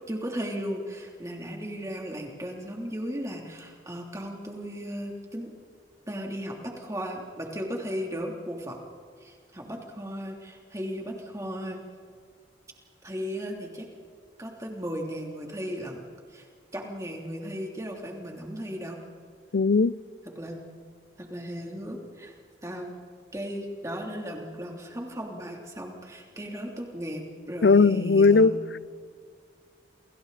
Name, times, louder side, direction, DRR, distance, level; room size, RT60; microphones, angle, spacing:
voice 1, 0.1-5.5 6.1-8.8 9.2-11.8 13.0-13.9 14.4-16.0 16.3-16.4 16.7-19.0 20.2-20.6 21.2-22.3 22.6-23.0 23.3-28.6, equal, 15° right, 3.1 m, -36 dB
voice 2, 19.5-19.9 27.6-28.8, left 4 dB, 75° left, 0.5 m, -19 dB
29.5 x 27.0 x 4.2 m
head